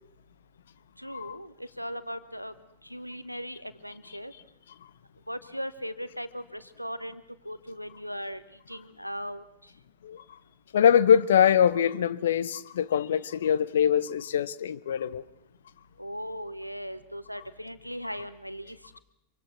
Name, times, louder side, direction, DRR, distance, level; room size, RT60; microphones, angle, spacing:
voice 1, 1.0-2.5 2.8-4.3 5.3-8.4 8.7-9.4 16.0-19.0, equal, 90° left, 1.2 m, -38 dB
voice 2, 10.7-15.2, left 8 dB, 65° left, 0.8 m, -23 dB
26.0 x 24.5 x 6.1 m
figure-of-eight pair, 90°, 0 cm